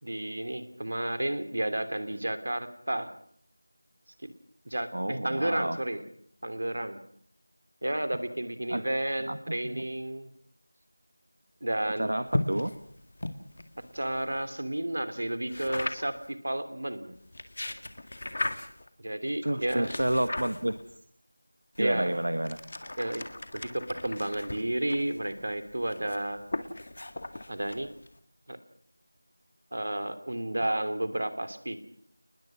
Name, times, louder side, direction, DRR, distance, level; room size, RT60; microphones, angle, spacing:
voice 1, 0.0-3.1 4.7-6.0 6.4-7.0 7.8-10.3 11.6-12.1 13.9-17.2 19.0-19.9 21.8-22.2 23.0-23.2 23.5-26.4 27.5-27.9 28.5-28.6 29.7-31.8, right 1 dB, 65° right, 10 dB, 3.0 m, -32 dB
voice 2, 4.9-5.8 8.7-8.8 9.3-9.8 12.0-12.7 19.4-20.8 21.8-22.6, right 1 dB, 80° right, 10 dB, 1.5 m, -30 dB
sound 1, 12.3-14.5 15.5-16.3 17.2-18.9 19.6-21.0 21.8-28.2, left 1 dB, 45° left, 2.0 m, -37 dB
29.5 x 20.5 x 6.3 m, 0.62 s
figure-of-eight pair, 175°, 0 cm